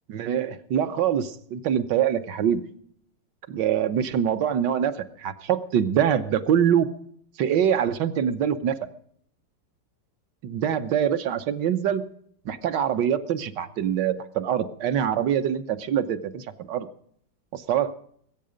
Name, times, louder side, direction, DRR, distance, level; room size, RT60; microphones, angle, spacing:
voice 1, 0.1-2.6 3.5-6.9 7.4-8.8 10.4-12.0 12.4-16.9 17.5-17.9, right 9 dB, 75° right, 10 dB, 1.5 m, -24 dB
21.0 x 8.7 x 5.1 m, 0.66 s
omnidirectional pair, 1.9 m